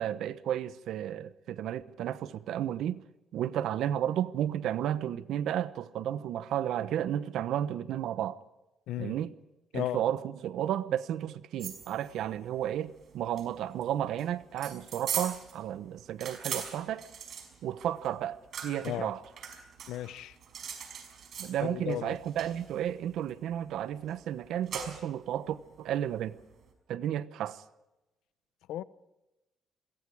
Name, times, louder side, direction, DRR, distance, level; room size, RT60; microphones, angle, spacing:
voice 1, 0.0-3.0 3.3-8.4 9.0-9.3 9.7-17.0 17.6-19.2 21.4-26.4 26.9-27.6, right 10 dB, 80° right, 1.1 m, -33 dB
sound 1, 11.6-26.7, right 7 dB, 65° right, 5.2 m, -42 dB
voice 2, 19.9-20.4 21.6-22.2 28.7-28.8, left 12 dB, 90° left, 0.9 m, -34 dB
26.5 x 22.5 x 4.9 m
cardioid pair, 90°, 0 cm